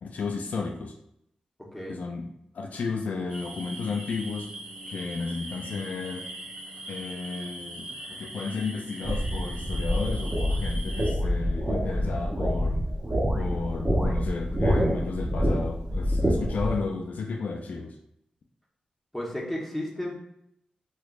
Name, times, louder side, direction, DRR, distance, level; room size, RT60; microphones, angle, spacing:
voice 1, 0.0-0.9 1.9-2.3 2.5-4.5 4.9-6.2 6.9-12.8 13.3-18.0, left 4 dB, 70° left, 2 dB, 0.4 m, -33 dB
sound 1, 3.3-11.1, right 1 dB, 45° right, 1.0 m, -41 dB
sound 2, 9.0-16.7, equal, 30° right, 0.7 m, -27 dB
voice 2, 19.1-20.2, left 1 dB, 5° left, -4 dB, 1.1 m, -33 dB
3.3 x 3.0 x 2.4 m, 0.78 s
cardioid pair, 60°, 3 cm